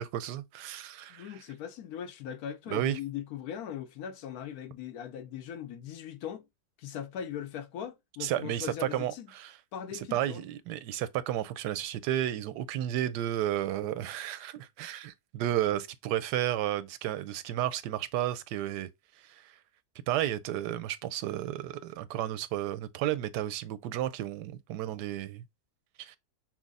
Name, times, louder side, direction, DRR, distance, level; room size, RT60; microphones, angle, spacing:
voice 1, 0.0-1.3 2.7-3.0 8.2-9.5 10.1-18.9 20.1-25.4 26.0-26.2, right 12 dB, 85° right, 1.2 m, -32 dB
voice 2, 1.1-6.5 6.8-9.3 9.7-10.4, left 9 dB, 70° left, 1.0 m, -40 dB
6.1 x 2.0 x 4.0 m
omnidirectional pair, 1.8 m